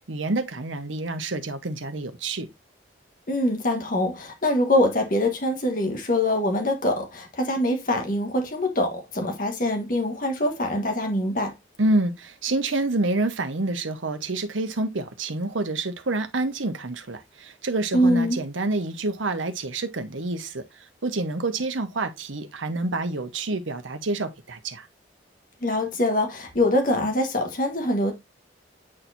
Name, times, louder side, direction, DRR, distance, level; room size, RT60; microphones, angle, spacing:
voice 1, 0.1-2.5 11.8-20.6 21.0-24.9, right 2 dB, 90° right, 1.0 m, -28 dB
voice 2, 3.3-11.5 17.9-18.4 25.6-28.1, left 1 dB, 45° left, 1.3 m, -24 dB
8.7 x 4.4 x 2.6 m
head